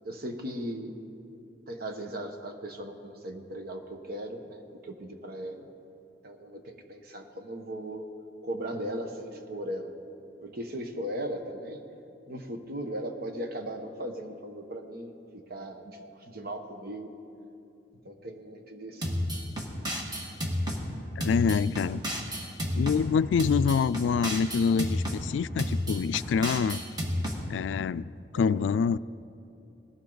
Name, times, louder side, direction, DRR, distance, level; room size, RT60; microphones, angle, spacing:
voice 1, 0.0-1.0 1.7-5.7 6.2-8.1 8.4-9.9 10.4-11.8 12.3-17.1 18.0-19.1 28.3-28.6, right 1 dB, 60° right, 5 dB, 1.2 m, -38 dB
sound 1, 19.0-20.8 21.2-23.0 23.4-25.2 25.6-27.4, equal, 25° right, 1.8 m, -31 dB
voice 2, 21.2-22.0 22.7-26.8 27.5-29.0, left 6 dB, 85° left, 16 dB, 0.3 m, -26 dB
19.0 x 15.5 x 4.0 m, 2.7 s
head